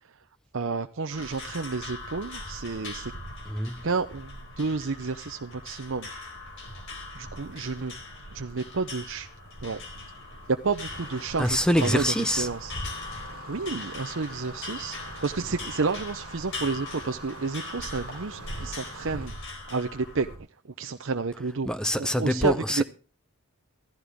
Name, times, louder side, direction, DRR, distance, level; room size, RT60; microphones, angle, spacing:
voice 1, 0.5-3.1 3.8-6.1 7.1-7.9 8.3-9.3 9.6-9.8 10.5-12.7 13.5-19.3 19.7-20.3 20.6-21.7 22.0-22.8, right 4 dB, 60° right, 0.7 m, -30 dB
sound 1, 1.1-20.4, left 2 dB, 60° left, 4.1 m, -40 dB
voice 2, 3.5-3.8 11.4-12.5 21.7-22.8, equal, 5° left, 0.6 m, -25 dB
Engine starting, 10.9-19.3, right 4 dB, 80° right, 1.6 m, -46 dB
15.0 x 14.5 x 3.6 m
head